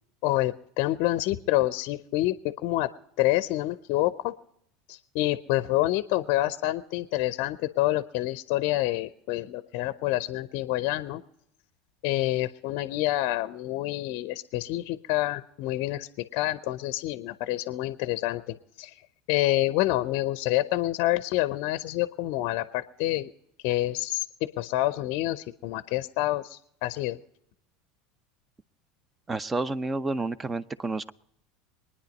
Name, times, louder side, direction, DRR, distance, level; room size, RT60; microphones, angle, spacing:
voice 1, 0.2-2.4 2.6-2.9 3.2-4.3 4.9-11.2 12.0-18.9 19.3-23.3 23.6-24.3 24.6-27.2, left 16 dB, 60° left, 14 dB, 0.6 m, -27 dB
voice 2, 29.3-31.1, right 3 dB, 20° right, 17 dB, 0.7 m, -30 dB
23.5 x 9.9 x 5.2 m, 0.77 s
hypercardioid pair, 75°, 0 cm